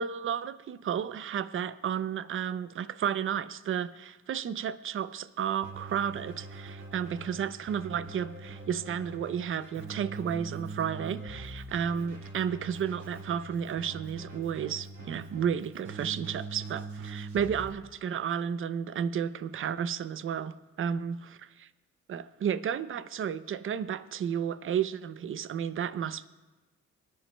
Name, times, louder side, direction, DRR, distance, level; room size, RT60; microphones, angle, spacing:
voice 1, 0.0-21.2 22.1-26.3, right 8 dB, 45° right, 0.5 m, -32 dB
Keyboard (musical), 5.6-17.7, right 3 dB, 70° right, 2.7 m, -43 dB
23.0 x 10.5 x 2.2 m
cardioid pair, 90°, 30 cm